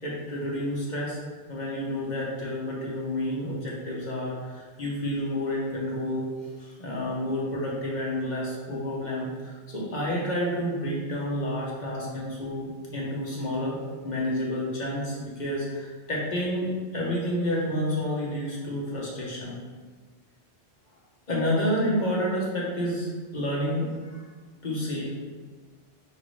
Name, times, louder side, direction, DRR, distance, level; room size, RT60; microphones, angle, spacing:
voice 1, 0.0-1.2 1.5-6.3 6.6-13.8 14.0-19.5 21.3-24.2 24.6-25.1, equal, 45° left, -4 dB, 1.0 m, -29 dB
5.8 x 2.5 x 3.2 m, 1.4 s
omnidirectional pair, 1.2 m